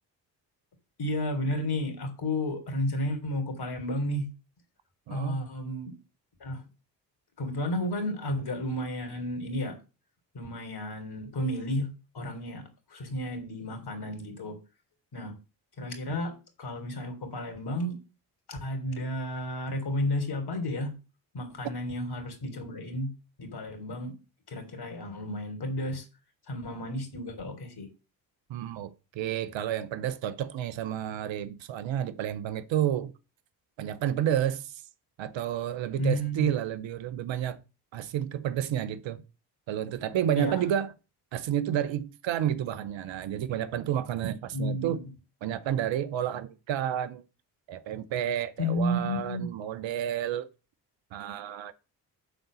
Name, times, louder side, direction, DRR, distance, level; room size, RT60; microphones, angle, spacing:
voice 1, 1.0-4.3 5.1-5.9 6.4-6.6 7.4-9.8 10.3-14.6 15.1-15.4 15.8-18.0 18.5-20.9 21.3-23.1 23.4-24.2 24.5-26.1 26.5-27.9 36.0-36.5 40.4-40.6 44.5-45.1 48.6-49.5, left 1 dB, 50° left, 3.6 m, -32 dB
voice 2, 5.1-5.4 28.5-33.1 33.8-34.7 35.2-37.6 37.9-39.2 39.7-40.9 41.3-45.0 45.4-47.2 47.7-50.5 51.1-51.7, right 10 dB, 65° right, 1.0 m, -30 dB
8.1 x 4.0 x 6.9 m
hypercardioid pair, 45°, 49 cm